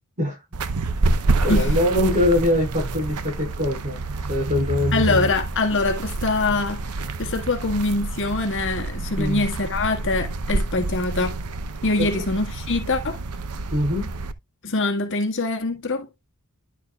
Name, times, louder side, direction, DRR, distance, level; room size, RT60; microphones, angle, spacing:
sound 1, 0.5-14.3, right 2 dB, 85° right, 0.8 m, -27 dB
voice 1, 1.4-4.0 4.3-5.3 9.2-9.4 12.0-12.1 13.7-14.1, left 1 dB, 35° right, 5.0 m, -23 dB
voice 2, 4.9-11.4 11.8-13.2 14.6-16.1, left 3 dB, 60° left, 1.7 m, -24 dB
10.5 x 6.4 x 2.3 m
head